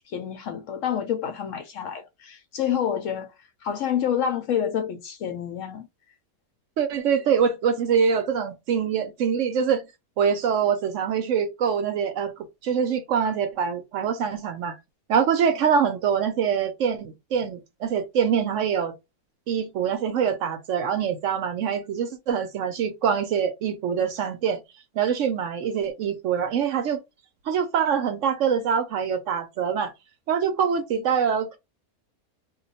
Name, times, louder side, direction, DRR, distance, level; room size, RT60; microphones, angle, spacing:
voice 1, 0.1-3.3 3.6-5.9, left 9 dB, 70° left, 0.9 m, -28 dB
voice 2, 6.8-9.8 10.2-12.3 12.6-14.8 15.1-18.9 19.5-24.6 24.9-27.0 27.5-29.9 30.3-31.6, right 7 dB, 65° right, 0.9 m, -24 dB
2.4 x 2.2 x 3.9 m
omnidirectional pair, 1.5 m